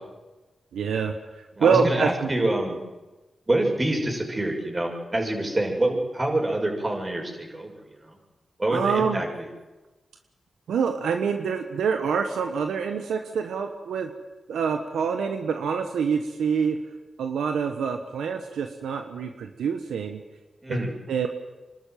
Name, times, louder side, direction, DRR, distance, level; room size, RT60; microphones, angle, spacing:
voice 1, 0.7-2.3 8.7-9.2 10.7-14.1 14.5-16.8 17.2-20.2 20.7-21.3, right 6 dB, 90° right, 5 dB, 1.3 m, -26 dB
voice 2, 1.6-2.8 3.5-8.2 8.6-9.3 20.6-20.9, right 1 dB, 30° right, 1 dB, 6.6 m, -26 dB
25.5 x 12.5 x 9.3 m, 1.1 s
cardioid pair, 45°, 0 cm